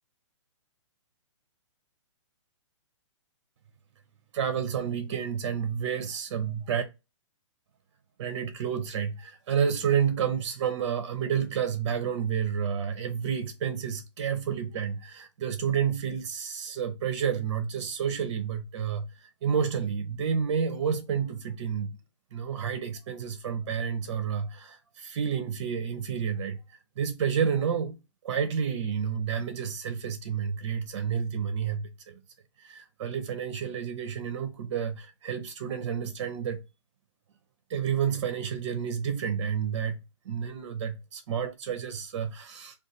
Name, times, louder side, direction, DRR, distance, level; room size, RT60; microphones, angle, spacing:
voice 1, 4.3-6.8 8.2-21.9 22.3-26.6 27.0-28.0 28.2-32.2 32.6-36.6 37.7-42.8, right 7 dB, 55° right, 0.6 m, -30 dB
2.4 x 2.3 x 3.9 m
hypercardioid pair, 135°, 16 cm